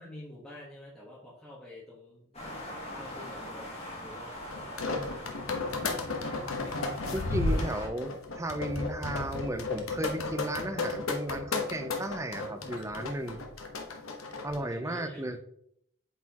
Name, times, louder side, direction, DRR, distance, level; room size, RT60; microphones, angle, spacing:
voice 1, 0.0-4.9 7.4-7.9 14.5-15.4, left 1 dB, ahead, -8 dB, 1.2 m, -48 dB
sound 1, 2.3-7.9, left 1 dB, 30° left, 1.7 m, -42 dB
sound 2, 4.5-14.6, left 3 dB, 80° left, 1.0 m, -33 dB
voice 2, 7.1-13.4 14.4-15.4, right 1 dB, 15° right, 7 dB, 0.5 m, -34 dB
8.2 x 4.3 x 2.9 m, 0.70 s
head